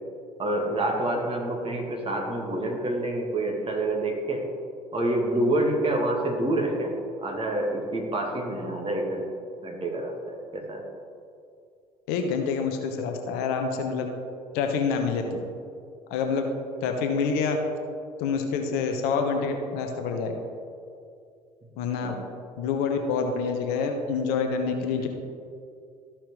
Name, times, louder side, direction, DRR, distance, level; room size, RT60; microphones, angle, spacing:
voice 1, 0.4-4.4 4.9-7.0 7.2-9.3 9.6-10.1 10.5-10.8 22.0-22.2, right 1 dB, 30° right, 0 dB, 1.8 m, -27 dB
voice 2, 12.1-14.1 14.5-15.4 16.1-16.5 16.8-17.6 18.2-20.4 21.8-22.1 22.6-25.1, left 5 dB, 60° left, 4 dB, 0.9 m, -27 dB
13.5 x 5.8 x 3.2 m, 2.4 s
figure-of-eight pair, 55°, 18 cm